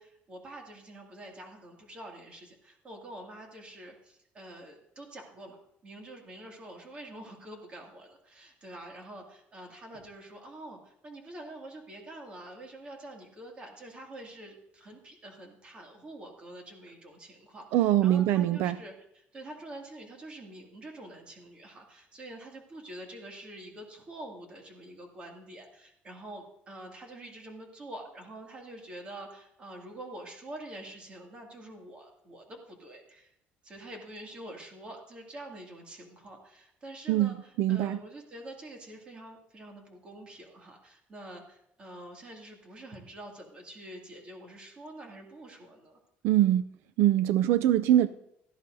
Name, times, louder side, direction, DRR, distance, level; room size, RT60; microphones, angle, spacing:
voice 1, 0.0-33.3 33.6-46.0, right 1 dB, 25° right, 1 dB, 2.3 m, -46 dB
voice 2, 17.7-18.8 37.1-38.0 46.2-46.7 47.0-48.1, right 12 dB, 80° right, 13 dB, 0.4 m, -23 dB
17.0 x 12.5 x 2.7 m, 0.78 s
cardioid pair, 175°, 4 cm